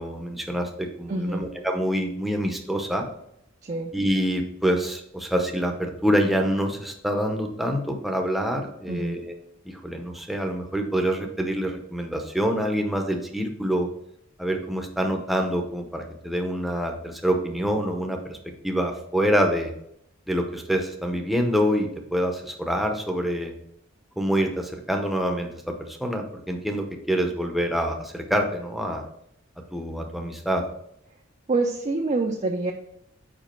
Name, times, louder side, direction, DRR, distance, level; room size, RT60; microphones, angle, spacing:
voice 1, 0.0-3.0 3.9-9.3 9.6-13.9 14.4-18.4 18.6-19.7 20.3-23.5 24.2-29.1 29.7-30.6, equal, ahead, 3 dB, 0.7 m, -26 dB
voice 2, 1.1-1.4 3.6-3.9 8.9-9.2 31.5-32.7, right 3 dB, 35° right, 2 dB, 0.5 m, -26 dB
5.1 x 4.7 x 4.3 m, 0.75 s
head